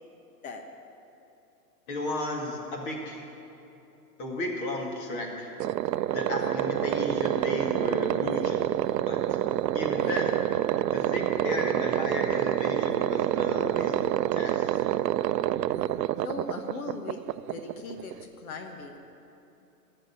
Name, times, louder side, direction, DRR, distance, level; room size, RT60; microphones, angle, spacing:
voice 1, 1.9-3.2 4.2-5.5 6.1-9.4 9.7-10.4 10.9-14.7, left 1 dB, 35° left, 0 dB, 2.1 m, -34 dB
sound 1, 5.6-18.2, right 12 dB, 90° right, 0.5 m, -27 dB
voice 2, 16.2-19.0, left 3 dB, 60° left, 5 dB, 1.3 m, -39 dB
13.5 x 6.6 x 9.8 m, 2.9 s
hypercardioid pair, 155°, 48 cm